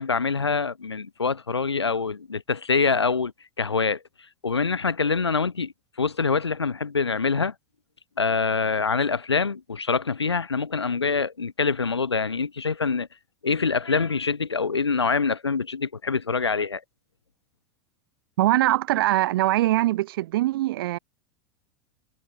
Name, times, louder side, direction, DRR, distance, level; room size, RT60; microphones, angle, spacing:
voice 1, 0.0-3.3 3.6-4.0 4.4-5.7 6.0-7.5 8.2-13.1 13.4-16.8, left 5 dB, 90° left, 0.6 m, -25 dB
voice 2, 18.4-21.0, right 16 dB, 60° right, 0.9 m, -22 dB
figure-of-eight pair, 90°, 14 cm